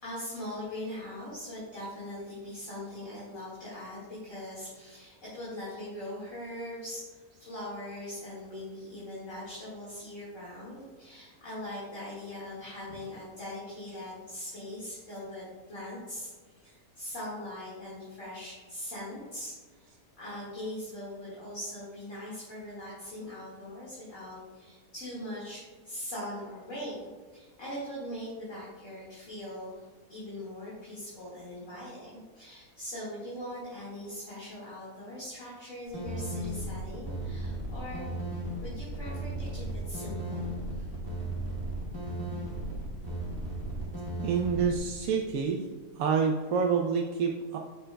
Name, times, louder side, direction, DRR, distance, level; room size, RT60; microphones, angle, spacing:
voice 1, 0.0-38.1 38.6-40.4 40.7-40.9, left 1 dB, 50° left, -8 dB, 2.2 m, -41 dB
sound 1, 35.9-44.8, right 1 dB, 30° right, 2.3 m, -35 dB
voice 2, 44.2-45.6 46.0-47.6, right 6 dB, 70° right, 1 dB, 1.0 m, -27 dB
8.7 x 6.8 x 2.2 m, 1.4 s
omnidirectional pair, 1.7 m